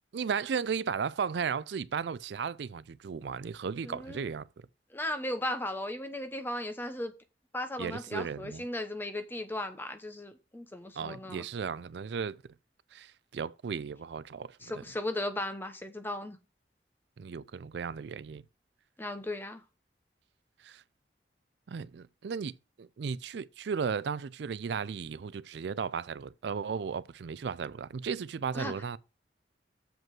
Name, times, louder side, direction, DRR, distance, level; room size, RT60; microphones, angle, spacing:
voice 1, 0.1-4.5 7.8-8.6 11.0-12.4 12.9-14.8 17.2-18.4 20.6-20.8 21.7-29.0, right 6 dB, 75° right, 0.4 m, -35 dB
voice 2, 3.8-4.2 4.9-7.1 7.5-11.5 14.6-16.4 19.0-19.6 28.5-28.7, left 1 dB, 10° left, 0.9 m, -36 dB
7.6 x 5.3 x 6.1 m
head